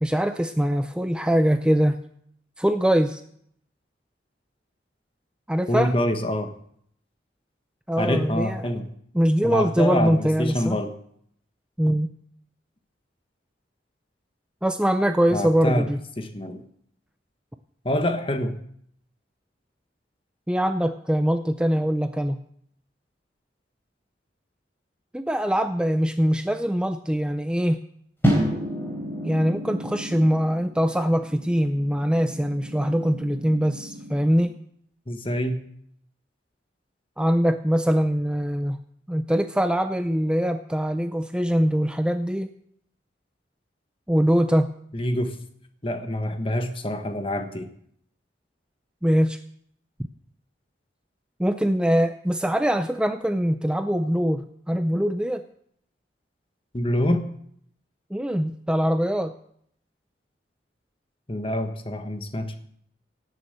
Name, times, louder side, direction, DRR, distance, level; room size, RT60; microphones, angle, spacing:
voice 1, 0.0-2.0 2.6-3.2 5.5-5.9 7.9-8.6 9.1-10.8 11.8-12.1 14.6-16.0 20.5-22.4 25.1-27.8 29.2-34.5 37.2-38.8 39.1-42.5 44.1-44.7 49.0-49.4 51.4-55.4 58.1-59.3, equal, 5° right, 8 dB, 0.5 m, -23 dB
voice 2, 5.7-6.5 8.0-8.9 9.4-10.9 15.3-15.9 16.2-16.6 17.8-18.6 35.1-35.6 44.9-45.4 45.8-47.7 56.7-57.2 61.3-62.6, left 1 dB, 30° left, 8 dB, 1.3 m, -26 dB
sound 1, 28.2-34.5, equal, 10° left, 3.9 m, -30 dB
18.0 x 7.3 x 7.9 m, 0.67 s
head